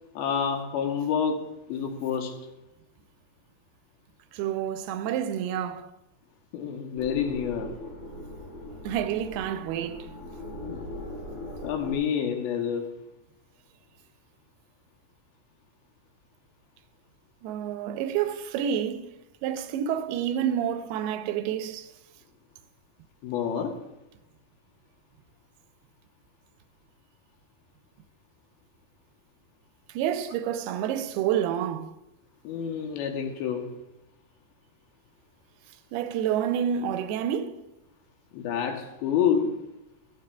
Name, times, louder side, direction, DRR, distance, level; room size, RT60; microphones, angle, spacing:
voice 1, 0.1-2.4 6.5-7.7 10.7-10.8 11.6-12.9 23.2-23.8 32.4-33.7 38.3-39.6, left 7 dB, 75° left, 2.8 m, -28 dB
voice 2, 4.3-5.9 8.8-10.1 17.4-19.1 19.4-21.9 29.9-31.9 35.9-37.6, right 9 dB, 90° right, 2.6 m, -29 dB
sound 1, 7.0-11.9, left 1 dB, 55° left, 1.0 m, -40 dB
16.0 x 13.0 x 2.3 m
omnidirectional pair, 4.5 m